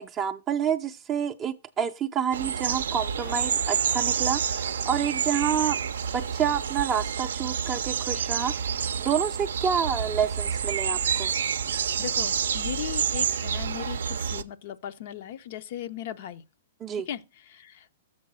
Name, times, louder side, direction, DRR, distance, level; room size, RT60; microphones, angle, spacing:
voice 1, 0.0-5.8 6.1-11.3 16.8-17.1, right 8 dB, 20° right, 0.4 m, -28 dB
sound 1, 2.3-14.4, right 7 dB, 85° right, 0.4 m, -28 dB
sound 2, 3.2-5.7, left 6 dB, 85° left, 0.8 m, -49 dB
voice 2, 12.0-16.4 16.9-17.9, left 10 dB, 55° left, 0.5 m, -37 dB
7.4 x 3.9 x 6.0 m
hypercardioid pair, 150°, 0 cm